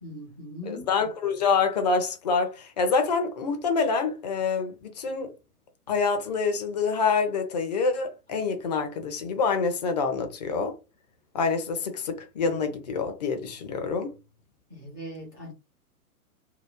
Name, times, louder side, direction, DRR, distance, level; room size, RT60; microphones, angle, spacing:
voice 1, 0.0-0.9 14.7-15.5, equal, 15° right, 0.3 m, -40 dB
voice 2, 0.7-5.3 5.9-10.8 11.3-14.1, left 5 dB, 30° left, 0.6 m, -26 dB
2.8 x 2.2 x 3.5 m
figure-of-eight pair, 120°, 45 cm